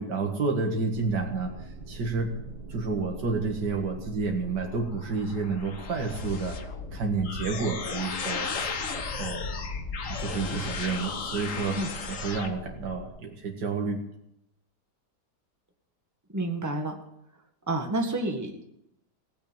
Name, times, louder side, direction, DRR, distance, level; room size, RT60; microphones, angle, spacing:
voice 1, 0.0-2.3 2.7-6.6 6.9-8.8 9.1-9.5 10.1-11.8 12.1-14.0, right 4 dB, 85° right, 1 dB, 2.4 m, -30 dB
sound 1, 0.9-13.1, right 3 dB, 70° right, 2.6 m, -44 dB
sound 2, 4.8-12.5, left 5 dB, 50° left, 1.5 m, -35 dB
voice 2, 16.3-17.0 17.7-18.7, right 2 dB, 10° right, 3 dB, 1.7 m, -29 dB
17.0 x 8.6 x 8.9 m, 0.80 s
omnidirectional pair, 1.8 m